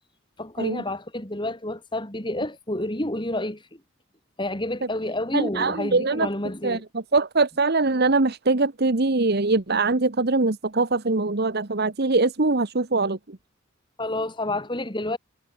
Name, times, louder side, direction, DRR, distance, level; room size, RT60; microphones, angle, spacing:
voice 1, 0.4-3.6 4.4-6.8 14.0-15.2, left 1 dB, 20° left, 3.6 m, -29 dB
voice 2, 5.3-6.3 6.6-13.4, right 3 dB, 50° right, 1.2 m, -22 dB
head